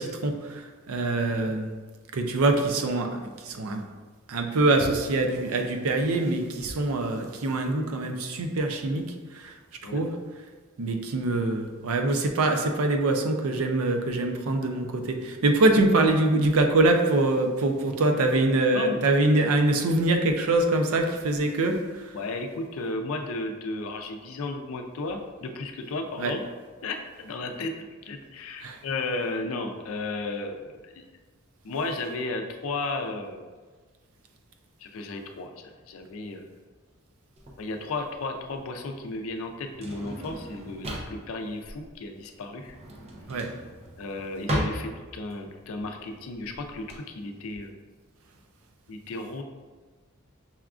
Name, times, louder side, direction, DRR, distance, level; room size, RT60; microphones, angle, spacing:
voice 1, 0.0-1.7 2.1-3.8 4.3-9.6 9.8-10.2 10.8-22.2 26.2-26.3 28.6-28.8 43.3-43.5, right 2 dB, 90° right, 5 dB, 0.5 m, -24 dB
voice 2, 22.1-26.4 26.8-27.7 28.1-31.0 31.6-33.4 34.8-36.4 37.6-42.8 44.0-47.7 48.9-49.4, left 2 dB, 70° left, 4 dB, 0.4 m, -34 dB
Drawer open or close, 37.4-47.0, equal, 30° right, 0.5 m, -36 dB
5.6 x 2.3 x 2.4 m, 1.4 s
head